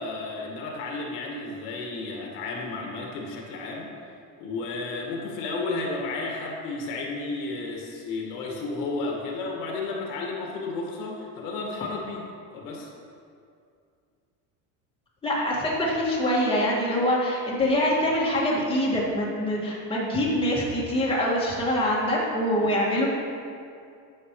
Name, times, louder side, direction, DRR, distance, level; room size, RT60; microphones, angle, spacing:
voice 1, 0.0-4.1 4.4-12.3 12.5-12.9 22.6-22.7, left 3 dB, 75° left, -1 dB, 1.9 m, -32 dB
voice 2, 15.2-23.1, equal, 15° left, -5 dB, 2.0 m, -24 dB
11.5 x 7.6 x 3.2 m, 2.4 s
supercardioid pair, 130°, 41 cm